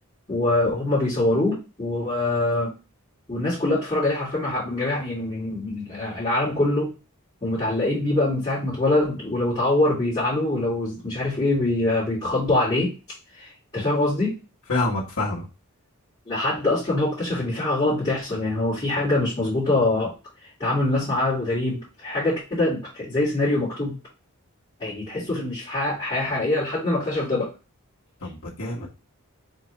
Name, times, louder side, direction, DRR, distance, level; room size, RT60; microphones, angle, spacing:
voice 1, 0.3-2.7 3.3-6.9 7.4-12.9 13.4-14.3 16.3-20.1 20.6-24.0 24.8-27.5, left 2 dB, 25° left, -10 dB, 2.3 m, -24 dB
voice 2, 14.7-15.4 28.2-28.9, left 2 dB, 75° left, -5 dB, 1.4 m, -27 dB
4.5 x 3.3 x 3.0 m, 0.31 s
head